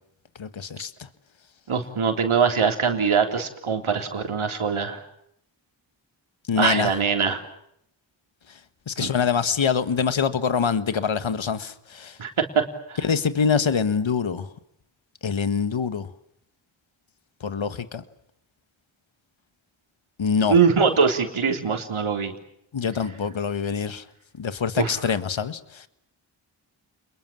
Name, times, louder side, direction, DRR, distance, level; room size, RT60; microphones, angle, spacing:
voice 1, 0.4-1.1 6.5-6.9 8.5-8.6 8.9-12.2 13.0-14.5 15.2-16.1 17.4-18.0 20.2-20.6 22.7-24.0 24.3-25.9, left 6 dB, 70° left, 12 dB, 1.7 m, -25 dB
voice 2, 1.7-5.0 6.6-7.4 9.0-9.1 12.2-12.3 12.6-12.7 12.9-13.0 20.5-22.3 24.8-24.9, right 6 dB, 85° right, 5 dB, 3.6 m, -22 dB
30.0 x 22.0 x 7.5 m, 0.73 s
cardioid pair, 40°, 48 cm